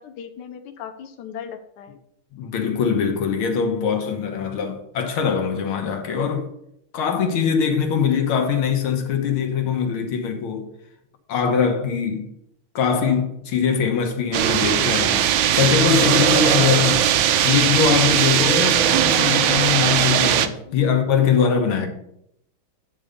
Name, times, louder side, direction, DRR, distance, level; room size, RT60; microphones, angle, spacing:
voice 1, 0.0-2.0 20.6-21.0, left 8 dB, 65° left, 1.3 m, -37 dB
voice 2, 2.3-6.5 6.9-10.7 11.3-12.3 12.8-15.3 15.5-17.1 17.4-21.9, left 7 dB, 90° left, 2.0 m, -22 dB
sound 1, 14.3-20.5, right 10 dB, 80° right, 1.3 m, -19 dB
9.6 x 3.7 x 6.6 m
omnidirectional pair, 2.3 m